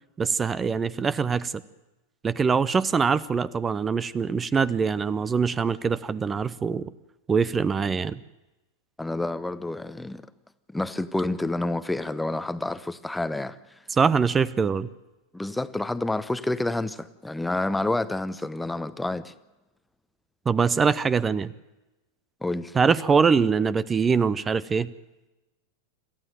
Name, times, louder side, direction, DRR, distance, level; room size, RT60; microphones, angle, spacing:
voice 1, 0.2-1.5 2.2-6.9 7.3-8.2 13.9-14.9 20.5-21.5 22.7-24.9, right 5 dB, 20° right, 0.7 m, -23 dB
voice 2, 9.0-10.2 10.7-13.6 15.3-19.3 22.4-22.8, left 2 dB, 5° left, 0.9 m, -29 dB
27.5 x 14.5 x 9.2 m
figure-of-eight pair, 90°, 0 cm